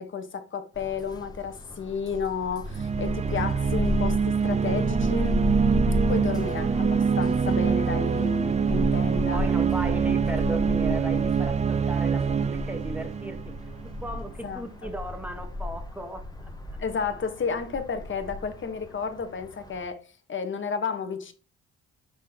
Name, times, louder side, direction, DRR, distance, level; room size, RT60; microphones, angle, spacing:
voice 1, 0.0-5.5 6.1-9.4 14.4-14.9 16.8-20.0 20.3-21.3, left 5 dB, 40° left, 1.3 m, -32 dB
sound 1, 0.7-19.9, left 1 dB, 15° left, 1.4 m, -34 dB
sound 2, 2.7-14.2, right 6 dB, 25° right, 0.4 m, -25 dB
voice 2, 9.3-13.4 13.8-16.5, right 1 dB, 5° right, 1.4 m, -36 dB
6.1 x 5.6 x 2.9 m
cardioid pair, 90°, 30 cm